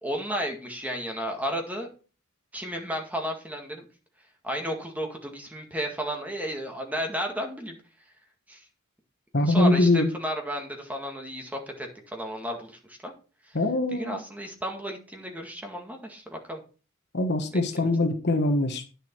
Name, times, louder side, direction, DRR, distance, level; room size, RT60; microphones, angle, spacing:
voice 1, 0.0-1.9 2.5-3.8 4.4-7.8 8.5-8.7 9.4-13.1 13.4-13.6 13.9-16.6 17.5-17.6, equal, 5° right, 2 dB, 1.8 m, -33 dB
voice 2, 9.3-10.1 13.5-14.1 17.1-18.9, left 2 dB, 55° left, 7 dB, 1.3 m, -23 dB
9.8 x 6.9 x 4.5 m, 0.35 s
head